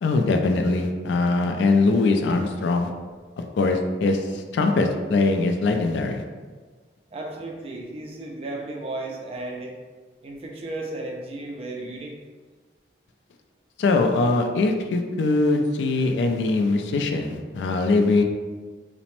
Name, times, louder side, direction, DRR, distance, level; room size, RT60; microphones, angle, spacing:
voice 1, 0.0-2.9 3.5-6.2 13.8-18.2, left 3 dB, 80° left, 4 dB, 0.3 m, -22 dB
voice 2, 7.1-9.7 10.2-12.1, right 2 dB, 35° right, 0 dB, 0.4 m, -34 dB
2.9 x 2.0 x 3.0 m, 1.4 s
head